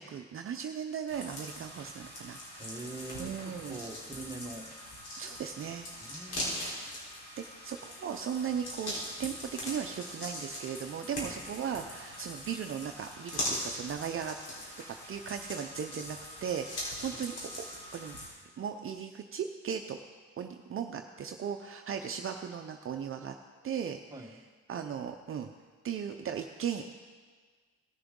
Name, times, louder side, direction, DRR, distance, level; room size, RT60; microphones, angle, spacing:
voice 1, 0.0-2.6 3.2-3.8 5.2-5.9 7.4-14.4 14.8-17.5 17.9-18.2 18.6-20.0 20.4-23.3 23.6-24.3 24.7-25.5 25.8-26.8, right 8 dB, 45° right, 5 dB, 0.6 m, -37 dB
sound 1, 1.1-18.3, left 1 dB, 85° left, 3.8 m, -41 dB
voice 2, 2.6-4.7 6.0-6.6 11.2-11.4 17.0-17.2 24.1-24.3, right 2 dB, 15° right, 2 dB, 1.1 m, -44 dB
17.0 x 6.8 x 3.7 m, 1.5 s
cardioid pair, 90°, 30 cm